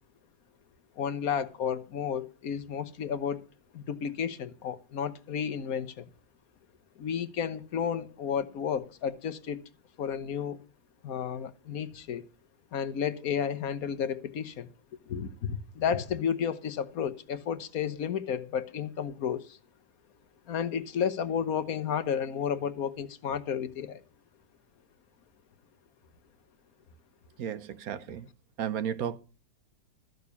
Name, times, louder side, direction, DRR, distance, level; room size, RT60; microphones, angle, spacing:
voice 1, 1.0-3.4 3.7-6.1 7.0-9.6 10.0-10.6 11.0-12.2 12.7-14.7 15.1-19.6 20.5-24.0, left 7 dB, 55° left, 1.2 m, -32 dB
voice 2, 27.4-28.3 28.6-29.2, right 9 dB, 60° right, 1.1 m, -33 dB
13.5 x 6.6 x 7.0 m
omnidirectional pair, 2.0 m